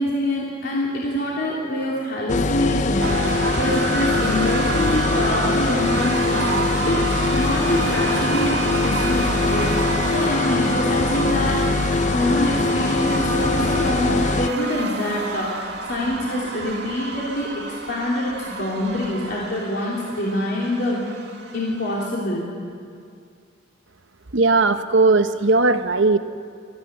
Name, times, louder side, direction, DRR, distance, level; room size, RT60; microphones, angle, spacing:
voice 1, 0.0-11.6 12.1-21.0 21.5-22.5, left 1 dB, 55° left, -5 dB, 3.3 m, -25 dB
sound 1, 2.3-14.5, left 3 dB, 35° left, 0.5 m, -22 dB
sound 2, 3.0-22.1, right 3 dB, 55° right, 1.9 m, -29 dB
voice 2, 24.3-26.2, right 3 dB, 70° right, 9 dB, 1.0 m, -17 dB
22.5 x 14.5 x 9.4 m, 2.3 s
head